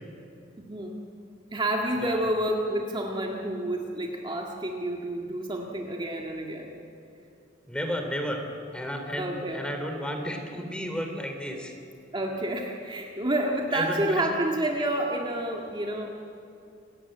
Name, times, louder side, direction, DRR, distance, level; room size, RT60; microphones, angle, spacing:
voice 1, 0.6-1.1 1.5-6.8 9.2-9.6 12.1-16.1, right 1 dB, 25° right, 0 dB, 1.8 m, -29 dB
voice 2, 7.7-8.4 8.7-11.7 13.7-14.3, equal, 5° left, 4 dB, 3.2 m, -32 dB
29.0 x 16.5 x 8.9 m, 2.6 s
head